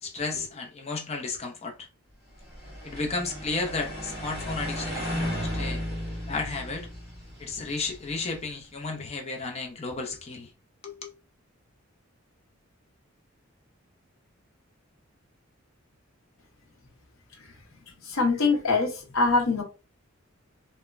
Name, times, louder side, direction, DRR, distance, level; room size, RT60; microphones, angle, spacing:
voice 1, 0.0-1.9 2.8-5.8 6.3-6.9 7.4-10.5 10.8-11.1, left 3 dB, 30° left, 0.6 m, -33 dB
sound 1, 2.4-8.5, equal, 15° right, 1.5 m, -35 dB
voice 2, 17.9-19.6, left 3 dB, 75° left, 0.8 m, -24 dB
3.1 x 2.1 x 2.3 m
head